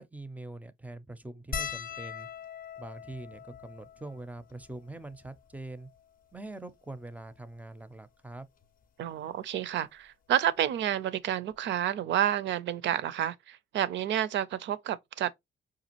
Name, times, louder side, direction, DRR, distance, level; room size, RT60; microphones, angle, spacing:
voice 1, 0.0-2.3 2.8-5.9 6.3-8.5, right 2 dB, 5° right, 0.5 m, -43 dB
sound 1, 1.5-6.1 6.9-7.0 7.2-7.4 8.6-8.8 10.3-10.4 10.6-10.8, left 7 dB, 45° left, 0.5 m, -42 dB
voice 2, 9.0-15.3, right 11 dB, 65° right, 0.5 m, -30 dB
5.0 x 2.4 x 2.8 m
cardioid pair, 90°, 20 cm